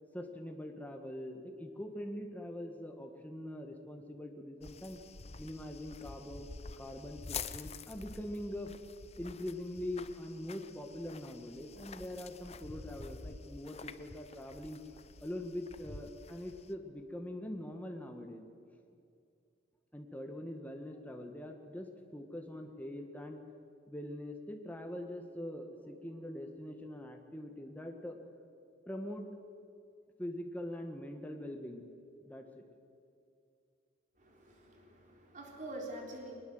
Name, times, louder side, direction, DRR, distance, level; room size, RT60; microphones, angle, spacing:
voice 1, 0.1-5.0 5.4-6.5 6.8-8.7 9.2-14.8 15.2-18.5 19.9-23.4 23.9-28.2 28.9-29.3 30.2-31.9 32.2-32.6, left 1 dB, 10° left, 3 dB, 1.7 m, -43 dB
sound 1, 4.6-16.7, left 5 dB, 35° left, 0.8 m, -48 dB
voice 2, 34.2-36.3, right 1 dB, 40° right, 1 dB, 3.8 m, -46 dB
22.0 x 20.0 x 7.9 m, 2.4 s
head